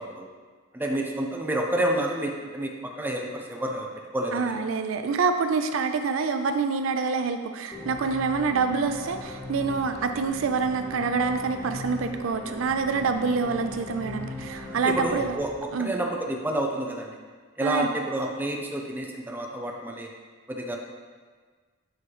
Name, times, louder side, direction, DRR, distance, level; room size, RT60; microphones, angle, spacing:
voice 1, 0.7-3.9 4.1-4.6 14.8-15.5 15.8-17.2 17.6-20.1 20.5-20.8, right 1 dB, 10° right, 0 dB, 0.6 m, -29 dB
voice 2, 4.3-15.4 15.7-15.9 17.6-17.9, right 5 dB, 75° right, 7 dB, 0.4 m, -26 dB
sound 1, 7.7-16.1, left 2 dB, 15° left, 0.9 m, -39 dB
8.4 x 3.2 x 4.7 m, 1.5 s
head